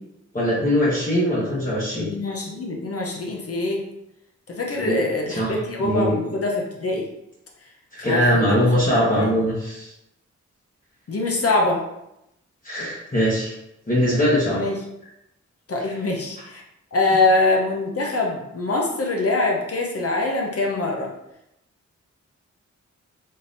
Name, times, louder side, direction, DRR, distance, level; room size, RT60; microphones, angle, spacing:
voice 1, 0.3-2.1 4.8-5.1 5.4-5.5 5.8-6.2 7.9-9.9 12.6-13.5 13.9-14.6, equal, 30° left, -7 dB, 1.1 m, -21 dB
voice 2, 2.1-3.8 4.5-7.1 8.0-8.6 9.2-9.3 11.1-11.8 14.5-14.8 15.7-16.6 16.9-21.1, left 2 dB, 50° left, 0 dB, 0.7 m, -24 dB
3.7 x 2.7 x 2.6 m, 0.84 s
cardioid pair, 50°, 30 cm